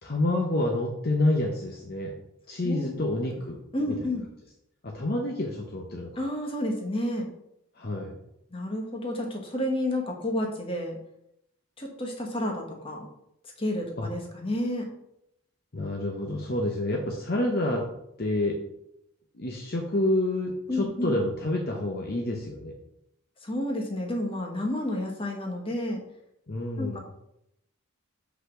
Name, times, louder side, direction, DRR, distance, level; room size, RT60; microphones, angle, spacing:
voice 1, 0.0-2.1 2.5-3.6 3.9-4.0 4.8-6.1 7.8-8.2 14.0-14.1 15.7-17.9 18.2-18.6 19.4-22.7 26.5-27.0, left 1 dB, 45° left, 0 dB, 0.8 m, -28 dB
voice 2, 2.6-3.0 3.7-4.2 6.2-7.3 8.5-11.0 11.8-13.1 13.6-14.9 20.7-21.1 23.4-26.0 26.8-27.0, left 1 dB, 25° left, 1 dB, 1.2 m, -30 dB
5.5 x 4.1 x 6.1 m, 0.80 s
head